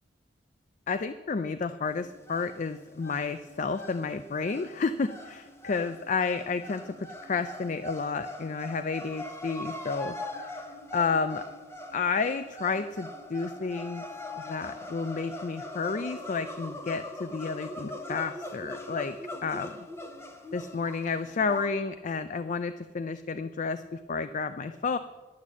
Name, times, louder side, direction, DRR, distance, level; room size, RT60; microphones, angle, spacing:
voice 1, 0.9-10.1 10.9-11.4 11.9-14.1 14.4-19.2 19.4-19.8 20.5-25.0, left 4 dB, 45° left, 11 dB, 0.4 m, -31 dB
sound 1, 1.9-21.7, left 1 dB, 15° left, 1.1 m, -42 dB
11.5 x 8.4 x 7.3 m, 1.3 s
head